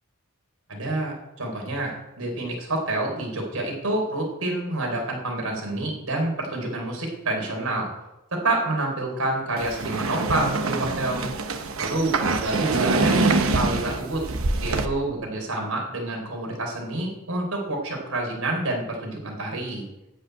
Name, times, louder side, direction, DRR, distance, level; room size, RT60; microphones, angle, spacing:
voice 1, 0.7-7.9 8.3-11.3 11.8-14.2 14.6-19.9, right 2 dB, 85° right, 1 dB, 3.6 m, -28 dB
sound 1, 9.6-14.9, right 3 dB, 70° right, 1.0 m, -25 dB
11.5 x 5.7 x 9.0 m, 0.99 s
head